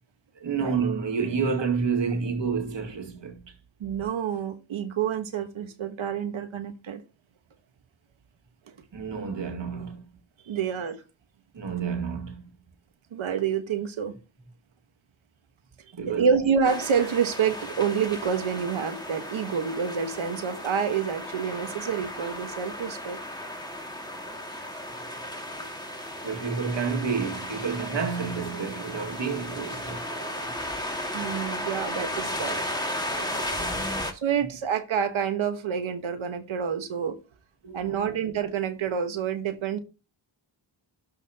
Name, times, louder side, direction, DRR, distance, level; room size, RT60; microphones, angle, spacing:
voice 1, 0.4-3.5 8.9-10.0 11.5-12.5 15.9-16.3 25.0-25.1 25.6-25.7 26.2-30.5 31.4-31.6 33.1-34.1 37.6-38.2, right 5 dB, 65° right, 2.1 m, -30 dB
voice 2, 3.8-7.0 10.5-11.0 13.1-14.1 16.1-23.2 31.1-32.6 34.1-37.2 37.7-39.8, right 7 dB, 85° right, 1.4 m, -28 dB
sound 1, 16.6-34.1, left 1 dB, 10° left, 2.2 m, -35 dB
12.5 x 5.8 x 2.9 m
cardioid pair, 60°, 47 cm